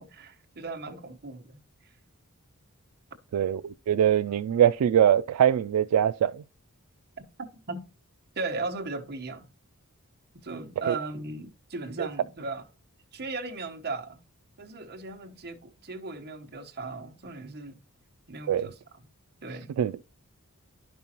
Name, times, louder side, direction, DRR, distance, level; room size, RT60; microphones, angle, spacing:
voice 1, 0.0-1.6 7.7-7.9 8.4-9.5 10.4-12.6 13.1-14.2 14.6-17.8 18.3-19.1 19.4-19.7, right 3 dB, 50° right, 1.1 m, -37 dB
voice 2, 3.3-6.4 10.9-11.0 12.0-12.1 18.5-18.7 19.8-19.9, right 9 dB, 80° right, 0.3 m, -23 dB
10.5 x 5.4 x 2.9 m
head